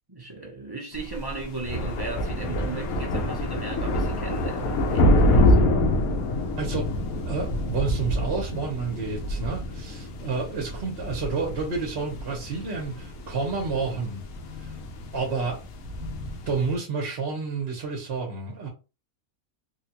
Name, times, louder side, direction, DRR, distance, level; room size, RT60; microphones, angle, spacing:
voice 1, 0.1-5.8, right 4 dB, 25° right, 0.5 m, -36 dB
sound 1, 0.9-16.7, left 1 dB, 80° left, 1.1 m, -26 dB
voice 2, 6.6-6.9 7.3-14.2 14.6-14.7 15.1-15.6 16.5-18.7, right 4 dB, 50° right, 0.9 m, -30 dB
3.4 x 2.2 x 2.8 m
omnidirectional pair, 1.5 m